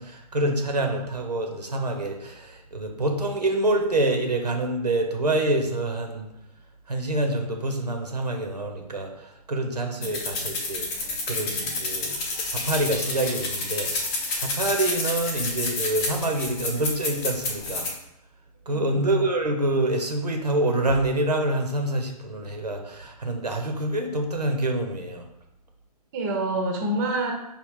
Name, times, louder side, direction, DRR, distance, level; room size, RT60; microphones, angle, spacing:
voice 1, 0.0-6.3 6.9-14.0 14.3-17.9 18.7-25.2, right 2 dB, 80° right, 3 dB, 0.7 m, -26 dB
sound 1, 10.0-17.9, left 3 dB, 20° left, 0.6 m, -29 dB
voice 2, 18.7-19.1 26.1-27.3, right 2 dB, 25° right, 2 dB, 0.6 m, -27 dB
4.9 x 2.4 x 3.4 m, 0.91 s
figure-of-eight pair, 125°, 21 cm